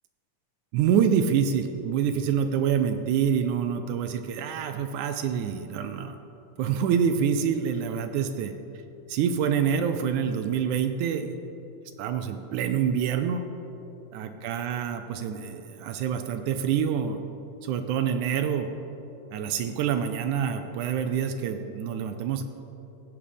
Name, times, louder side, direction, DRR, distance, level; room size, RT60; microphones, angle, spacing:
voice 1, 0.7-6.2 6.6-8.5 9.1-11.3 12.0-13.4 14.1-17.2 17.6-18.7 19.3-22.4, right 8 dB, 80° right, 8 dB, 2.0 m, -26 dB
16.5 x 8.8 x 5.1 m, 3.0 s
omnidirectional pair, 3.7 m